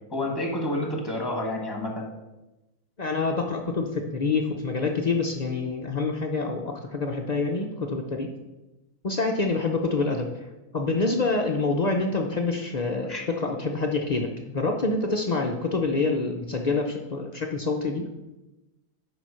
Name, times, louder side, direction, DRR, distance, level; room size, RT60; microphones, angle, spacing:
voice 1, 0.1-2.1 13.1-13.2, left 1 dB, 15° left, 1 dB, 1.2 m, -29 dB
voice 2, 3.0-8.3 9.0-10.3 10.7-18.0, left 3 dB, 55° left, 3 dB, 0.4 m, -26 dB
7.6 x 5.1 x 5.5 m, 1.0 s
omnidirectional pair, 1.6 m